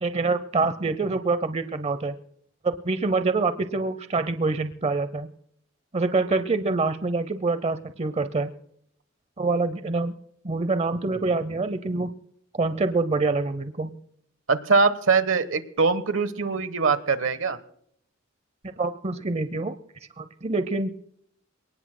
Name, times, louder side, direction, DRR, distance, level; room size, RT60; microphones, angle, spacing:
voice 1, 0.0-2.2 2.6-5.3 5.9-8.5 9.4-10.1 10.4-12.1 12.5-13.9 18.8-19.7 20.2-21.0, right 3 dB, 30° right, 12 dB, 0.7 m, -26 dB
voice 2, 14.5-17.6, right 4 dB, 80° right, 13 dB, 1.1 m, -22 dB
28.0 x 18.5 x 2.2 m, 0.70 s
head